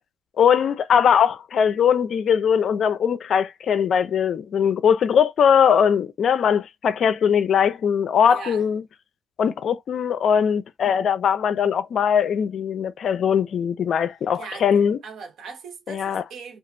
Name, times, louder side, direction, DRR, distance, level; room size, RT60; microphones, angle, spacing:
voice 1, 0.4-8.8 9.4-15.0 15.9-16.2, left 7 dB, 60° left, 0.4 m, -20 dB
voice 2, 8.3-8.6 14.3-14.7 15.0-16.6, right 5 dB, 70° right, 0.9 m, -39 dB
2.8 x 2.4 x 2.6 m
cardioid pair, 90°, 0 cm